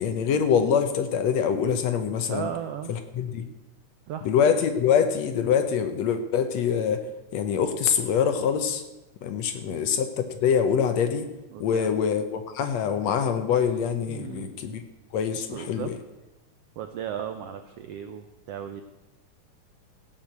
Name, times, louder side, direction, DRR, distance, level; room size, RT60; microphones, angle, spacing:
voice 1, 0.0-2.5 2.9-3.4 4.2-7.0 7.3-8.8 9.2-11.3 11.6-14.8 15.1-16.0, left 7 dB, 70° left, 8 dB, 1.8 m, -24 dB
voice 2, 2.3-2.9 4.1-4.3 9.6-9.8 11.5-12.0 14.1-14.5 15.5-15.9 16.8-18.8, right 9 dB, 80° right, 8 dB, 1.4 m, -36 dB
16.5 x 6.0 x 7.9 m, 1.0 s
omnidirectional pair, 3.6 m